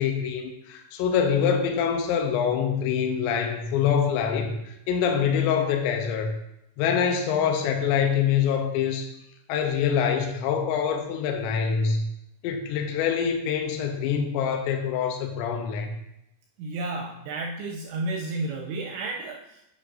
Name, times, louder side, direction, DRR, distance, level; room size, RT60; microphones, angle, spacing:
voice 1, 0.0-6.3 6.8-9.1 9.5-12.0 12.4-15.9, left 7 dB, 80° left, 4 dB, 2.7 m, -25 dB
voice 2, 16.6-19.6, right 2 dB, 80° right, -1 dB, 2.7 m, -32 dB
8.5 x 6.9 x 2.6 m, 0.83 s
omnidirectional pair, 5.5 m